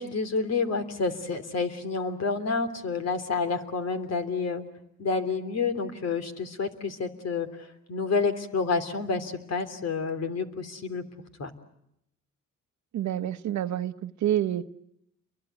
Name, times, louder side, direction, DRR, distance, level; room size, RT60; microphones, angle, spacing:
voice 1, 0.0-4.6 5.0-11.0 11.4-11.5, left 4 dB, 55° left, 8 dB, 3.2 m, -29 dB
voice 2, 12.9-14.6, right 11 dB, 70° right, 12 dB, 1.1 m, -28 dB
30.0 x 23.5 x 8.1 m, 0.77 s
cardioid pair, 90°, 30 cm